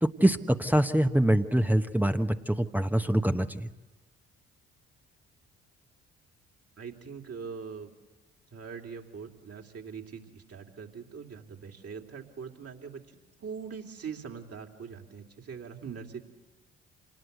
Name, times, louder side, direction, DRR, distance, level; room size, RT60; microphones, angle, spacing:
voice 1, 0.0-3.7, right 1 dB, 5° right, 6 dB, 1.1 m, -25 dB
voice 2, 6.8-7.9 8.5-13.0 13.4-16.2, right 6 dB, 45° right, 2 dB, 3.0 m, -42 dB
27.0 x 19.5 x 8.2 m, 1.2 s
figure-of-eight pair, 45°, 33 cm